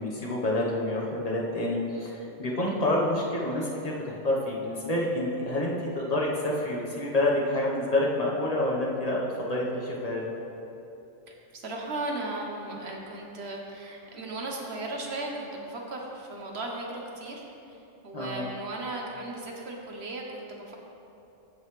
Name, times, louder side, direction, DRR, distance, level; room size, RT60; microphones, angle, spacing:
voice 1, 0.0-10.2 18.1-18.5, left 1 dB, 30° left, -3 dB, 1.1 m, -28 dB
voice 2, 11.3-20.8, right 2 dB, 55° right, -1 dB, 1.3 m, -36 dB
14.5 x 5.4 x 3.2 m, 2.9 s
omnidirectional pair, 1.3 m